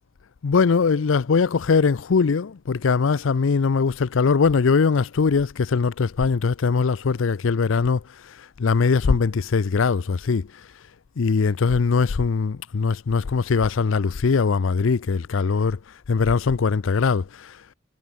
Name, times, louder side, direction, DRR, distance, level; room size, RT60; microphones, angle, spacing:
voice 1, 0.4-10.6 11.2-15.8 16.1-17.6, left 5 dB, 70° left, 0.5 m, -21 dB
head